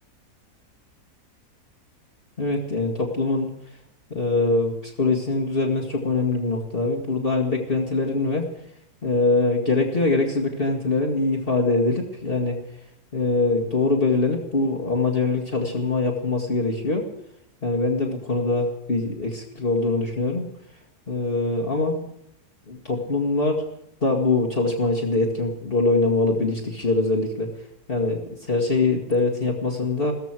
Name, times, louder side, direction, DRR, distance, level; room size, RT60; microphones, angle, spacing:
voice 1, 2.4-3.5 4.1-8.5 9.0-12.6 13.1-17.1 17.6-20.5 21.1-22.1 22.7-23.6 24.0-27.5 27.9-30.1, left 3 dB, 35° left, -2 dB, 2.2 m, -23 dB
16.0 x 14.5 x 6.1 m, 0.78 s
omnidirectional pair, 1.7 m